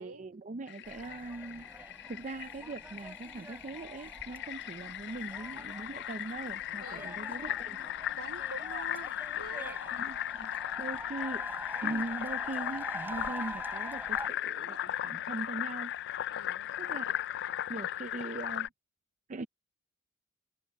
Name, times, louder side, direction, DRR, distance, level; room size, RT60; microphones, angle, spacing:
voice 1, 0.0-1.7 2.1-7.8 9.9-10.5 10.8-11.4 11.8-15.9 16.8-17.2 17.7-18.7 19.3-19.5, right 2 dB, 35° right, 0.5 m, -41 dB
Fill (with liquid), 0.7-18.7, left 12 dB, 55° left, 0.4 m, -37 dB
sound 1, 0.8-14.3, right 2 dB, 10° right, 7.6 m, -46 dB
voice 2, 6.8-7.2 8.1-9.8 16.3-16.8, right 3 dB, 70° right, 2.7 m, -46 dB
open air
head